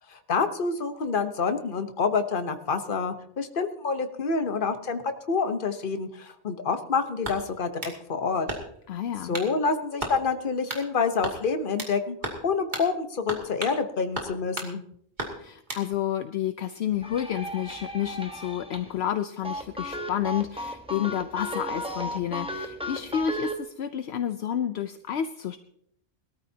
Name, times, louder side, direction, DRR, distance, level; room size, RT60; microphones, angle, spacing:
voice 1, 0.1-7.7 8.1-8.5 9.3-12.2 12.4-14.8, left 5 dB, 50° left, 8 dB, 1.2 m, -27 dB
sound 1, 7.2-8.0 8.5-8.9 9.3-9.5 10.0-10.2 10.7-10.9 11.2-12.0 12.2-12.4 12.7-12.9 13.3-13.8 14.1-14.7 15.2-15.9, right 1 dB, 40° right, 2.6 m, -34 dB
voice 2, 8.9-9.4 15.4-25.6, left 10 dB, 70° left, 10 dB, 0.9 m, -30 dB
sound 2, 16.9-19.1 19.4-23.6, equal, 5° right, 1.2 m, -35 dB
21.0 x 13.5 x 2.8 m, 0.68 s
omnidirectional pair, 1.2 m